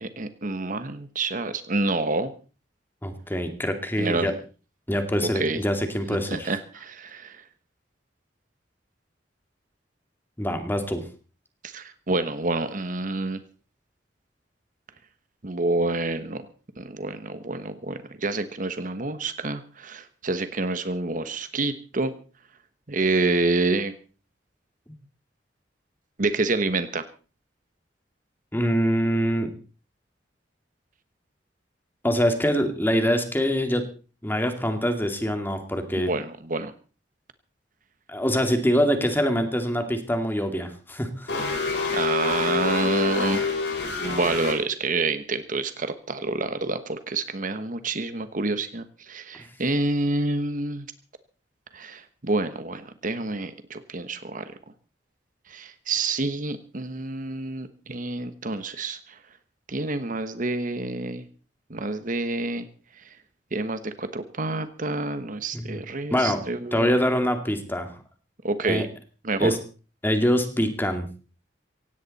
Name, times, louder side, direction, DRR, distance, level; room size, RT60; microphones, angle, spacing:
voice 1, 0.0-2.3 4.0-4.3 5.2-5.6 6.3-7.4 11.6-13.4 15.4-16.5 16.8-22.1 22.9-23.9 26.2-27.0 36.0-36.7 41.9-43.5 43.9-50.9 51.7-54.5 55.5-59.2 59.7-61.3 61.7-62.7 63.0-63.1 63.5-66.9 68.4-68.9 69.2-69.6, right 3 dB, 50° right, 11 dB, 1.2 m, -28 dB
voice 2, 3.0-4.3 4.9-6.5 10.4-11.0 28.5-29.5 32.0-33.8 34.2-36.1 38.1-41.4 65.5-65.8 66.1-66.4 66.7-67.9 68.6-68.9 69.4-69.6 70.0-71.1, equal, 10° left, 6 dB, 2.3 m, -24 dB
sound 1, 41.3-44.5, left 4 dB, 70° left, 7.2 m, -26 dB
17.5 x 16.5 x 4.2 m, 0.37 s
head